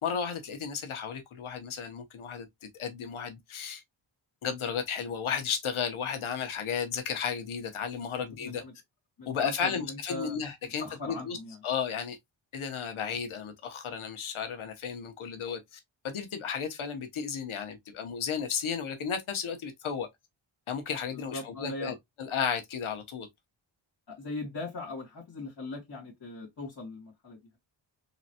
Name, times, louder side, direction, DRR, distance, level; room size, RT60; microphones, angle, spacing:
voice 1, 0.0-2.5 2.8-3.8 4.4-8.6 9.3-11.4 11.6-12.2 12.5-20.1 20.7-23.3, left 7 dB, 85° left, 1.0 m, -34 dB
voice 2, 8.4-8.7 9.2-10.4 10.6-11.6 21.1-21.9 24.1-27.6, left 2 dB, 55° left, 2.0 m, -40 dB
4.0 x 3.1 x 2.8 m
wide cardioid pair, 140°, 48 cm